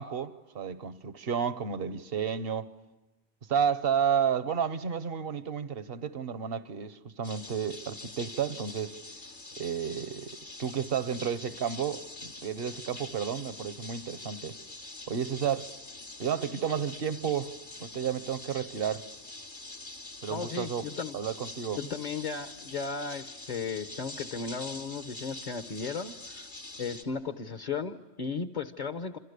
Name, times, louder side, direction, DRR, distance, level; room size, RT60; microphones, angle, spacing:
voice 1, 0.0-2.7 3.5-9.0 9.6-14.6 15.1-15.7 16.2-17.5 17.8-19.0 20.2-20.8 21.1-21.8, right 7 dB, 60° right, 1.2 m, -31 dB
sound 1, 7.2-27.0, left 2 dB, 80° left, 3.0 m, -45 dB
voice 2, 20.3-21.2 21.8-26.5 26.8-29.2, left 5 dB, 40° left, 1.0 m, -35 dB
27.5 x 27.0 x 6.7 m
omnidirectional pair, 1.1 m